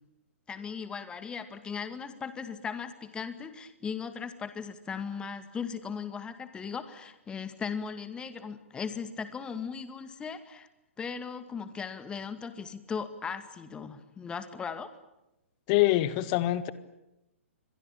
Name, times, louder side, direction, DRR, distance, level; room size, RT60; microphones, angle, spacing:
voice 1, 0.5-10.7 11.0-14.9, left 6 dB, 15° left, 10 dB, 2.2 m, -38 dB
voice 2, 15.7-16.7, left 16 dB, 35° left, 14 dB, 1.8 m, -24 dB
28.5 x 23.5 x 8.8 m, 0.93 s
figure-of-eight pair, 115°, 7 cm